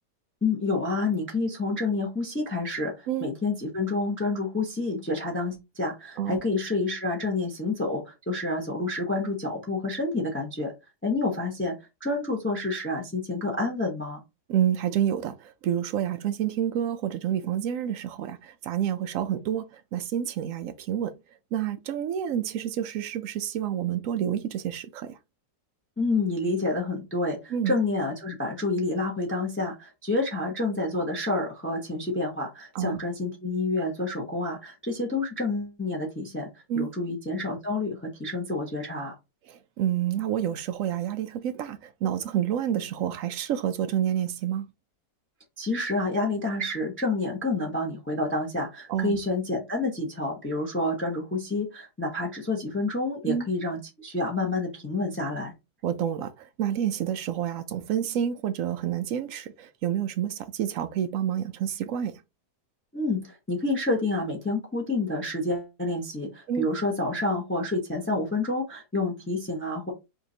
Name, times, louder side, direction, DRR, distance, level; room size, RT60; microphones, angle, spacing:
voice 1, 0.4-10.7 11.0-11.7 12.0-14.2 26.0-36.5 36.7-39.1 45.6-55.5 62.9-69.9, left 2 dB, 10° left, 0.8 m, -28 dB
voice 2, 14.5-21.2 21.5-25.2 27.5-27.8 32.7-33.0 36.7-36.9 39.5-44.7 48.9-49.2 53.2-53.4 55.8-62.2 66.5-66.7, right 10 dB, 70° right, 0.8 m, -28 dB
5.3 x 2.8 x 2.7 m
omnidirectional pair, 1.8 m